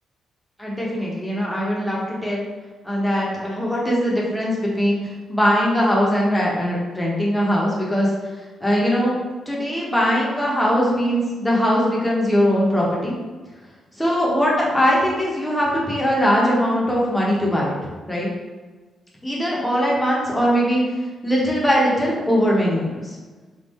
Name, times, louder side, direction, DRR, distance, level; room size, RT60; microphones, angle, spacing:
voice 1, 0.6-2.5 2.8-5.0 5.3-8.1 8.6-9.2 9.5-13.1 14.0-17.7 18.1-18.3 19.2-20.8 21.2-23.1, equal, 5° left, -5 dB, 0.9 m, -20 dB
3.6 x 2.6 x 4.1 m, 1.3 s
wide cardioid pair, 155°, 0 cm